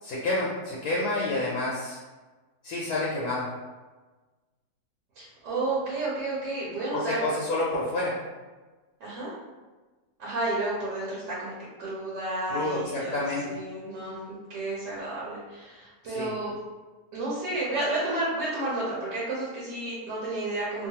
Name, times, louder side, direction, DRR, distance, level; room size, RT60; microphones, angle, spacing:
voice 1, 0.0-2.0 2.6-3.5 6.9-8.1 12.5-13.5 16.0-16.3, left 2 dB, 75° left, -5 dB, 1.1 m, -29 dB
voice 2, 5.2-7.2 9.0-9.3 10.2-14.2 14.5-16.6 17.1-20.9, right 2 dB, 85° right, -7 dB, 1.4 m, -31 dB
3.0 x 2.3 x 2.7 m, 1.3 s
omnidirectional pair, 1.8 m